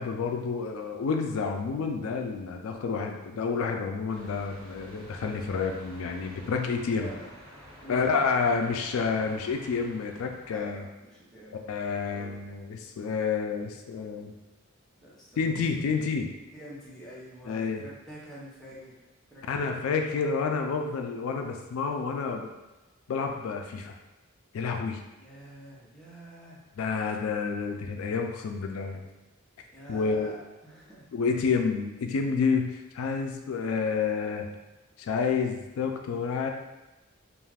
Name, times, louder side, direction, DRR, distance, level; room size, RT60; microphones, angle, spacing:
voice 1, 0.0-7.1 7.9-10.8 11.7-14.3 15.4-16.3 17.5-17.8 19.5-22.5 23.1-23.9 24.5-25.0 26.8-29.1 29.9-30.3 31.1-34.5 35.0-36.5, left 5 dB, 90° left, 3 dB, 0.3 m, -29 dB
voice 2, 3.4-3.9 6.9-7.3 7.8-8.2 10.5-11.6 12.1-12.5 15.0-15.8 16.5-19.0 19.3-20.2 25.2-26.6 29.7-31.1, equal, ahead, -8 dB, 0.6 m, -46 dB
sound 1, 4.1-10.7, equal, 50° right, 1.0 m, -50 dB
2.4 x 2.3 x 3.3 m, 1.0 s
head